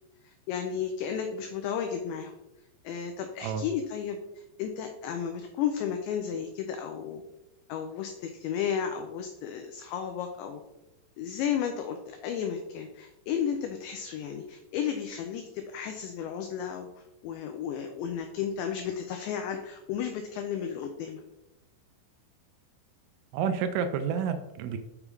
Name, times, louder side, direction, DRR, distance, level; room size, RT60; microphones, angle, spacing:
voice 1, 0.2-2.3 2.8-7.2 7.7-10.6 11.2-21.2, left 8 dB, 85° left, 5 dB, 2.5 m, -33 dB
voice 2, 23.3-24.8, right 7 dB, 85° right, 8 dB, 2.9 m, -29 dB
6.8 x 6.0 x 3.5 m, 0.91 s
omnidirectional pair, 5.8 m